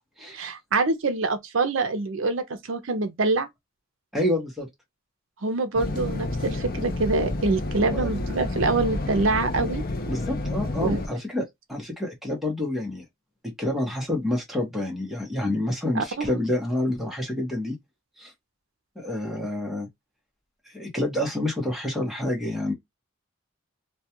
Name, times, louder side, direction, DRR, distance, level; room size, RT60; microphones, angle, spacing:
voice 1, 0.3-3.5 5.4-9.8 10.8-11.0 15.9-16.4, right 3 dB, 65° right, 0.6 m, -25 dB
voice 2, 4.1-4.7 7.9-8.2 10.1-13.0 13.4-17.8 18.2-18.3 19.0-19.9 20.7-22.7, left 1 dB, ahead, 0.9 m, -28 dB
sound 1, 5.7-11.1, left 2 dB, 45° left, 0.5 m, -30 dB
2.3 x 2.2 x 2.8 m
head